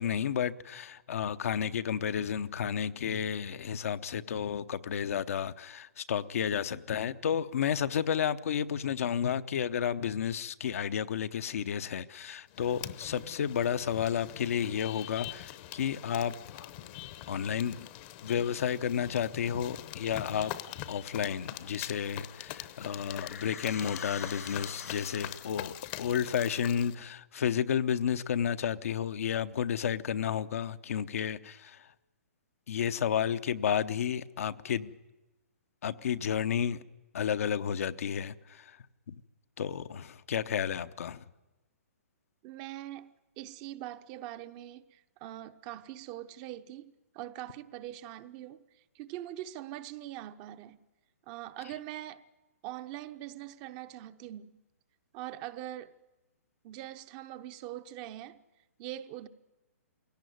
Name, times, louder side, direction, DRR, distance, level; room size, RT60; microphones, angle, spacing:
voice 1, 0.0-16.7 17.3-17.9 18.2-20.5 20.9-31.9 32.7-34.9 35.8-36.8 37.1-38.8 39.1-39.2 39.6-41.2, left 8 dB, 65° left, 0.8 m, -32 dB
sound 1, 12.5-26.9, left 14 dB, 35° left, 0.9 m, -44 dB
sound 2, 22.3-25.7, left 6 dB, 85° left, 3.0 m, -46 dB
voice 2, 42.4-48.6 48.9-50.8 51.3-52.2 52.6-54.6 55.1-56.0 56.6-58.4 58.8-59.3, right 13 dB, 30° right, 0.8 m, -43 dB
21.5 x 17.5 x 9.3 m
hypercardioid pair, 145°, 8 cm